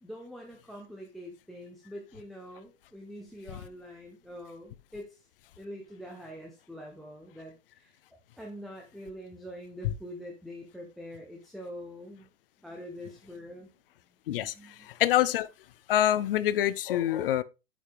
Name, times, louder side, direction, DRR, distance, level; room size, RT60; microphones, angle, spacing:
voice 1, 0.0-5.2 5.6-8.0 8.4-12.3 12.6-13.7 14.5-14.9, equal, ahead, 0.7 m, -44 dB
voice 2, 14.9-15.5 15.9-17.4, left 12 dB, 45° left, 0.7 m, -25 dB
9.3 x 7.2 x 3.5 m
hypercardioid pair, 165°, 37 cm